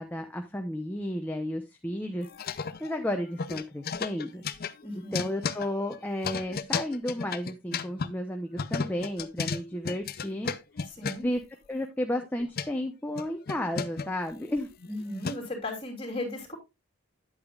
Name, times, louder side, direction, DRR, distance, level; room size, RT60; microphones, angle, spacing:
voice 1, 0.0-4.4 5.1-10.5 11.2-11.4 11.7-14.7, left 1 dB, 10° left, 0.7 m, -33 dB
sound 1, 2.2-3.1 3.4-8.1 8.6-11.4 12.2-12.7 13.2-15.6, left 5 dB, 40° left, 0.5 m, -33 dB
voice 2, 4.8-5.3 10.8-11.3 14.9-16.6, left 1 dB, 25° left, 3.0 m, -36 dB
9.8 x 8.4 x 2.4 m
head